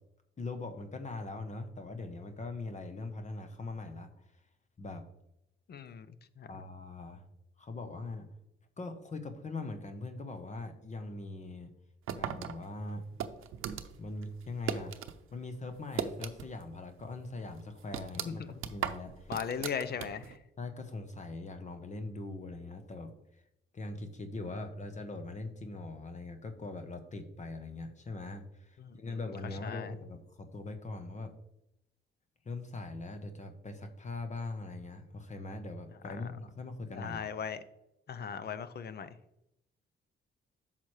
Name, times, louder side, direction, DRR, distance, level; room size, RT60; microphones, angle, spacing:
voice 1, 0.4-4.2 4.8-5.0 6.5-7.2 7.6-8.3 8.8-11.7 12.2-13.0 14.0-15.0 15.3-18.4 18.7-19.3 20.6-23.1 23.7-31.3 32.4-37.2, left 2 dB, 35° left, 7 dB, 1.0 m, -41 dB
voice 2, 5.7-6.1 6.4-6.5 18.2-18.5 19.3-20.4 28.8-29.1 29.6-29.9 36.2-36.4 36.9-37.6 38.1-39.1, left 7 dB, 50° left, 14 dB, 0.6 m, -38 dB
sound 1, 12.1-15.2 15.5-16.7 17.0-17.1 17.5-20.4, right 9 dB, 85° right, 0.6 m, -38 dB
8.5 x 5.8 x 3.2 m, 0.84 s
cardioid pair, 95°, 21 cm